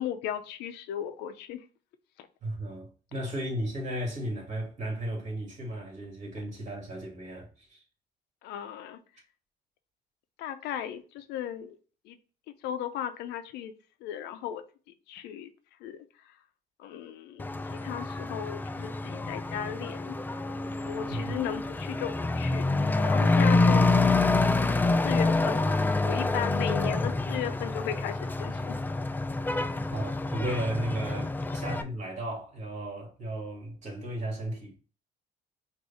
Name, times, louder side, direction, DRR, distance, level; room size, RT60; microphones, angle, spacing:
voice 1, 0.0-1.6 8.4-9.0 10.4-11.8 12.0-12.2 12.6-13.7 14.0-14.6 15.1-15.5 15.8-16.3 16.8-17.4 17.7-20.2 20.9-23.9 25.0-28.8, left 10 dB, 90° left, 0.6 m, -36 dB
voice 2, 2.4-7.8 21.1-21.4 29.9-34.7, right 1 dB, 45° right, 2.4 m, -35 dB
Truck / Accelerating revving vroom, 17.4-31.8, left 3 dB, 10° left, 0.3 m, -27 dB
4.9 x 2.7 x 4.1 m
cardioid pair, 110°, 17 cm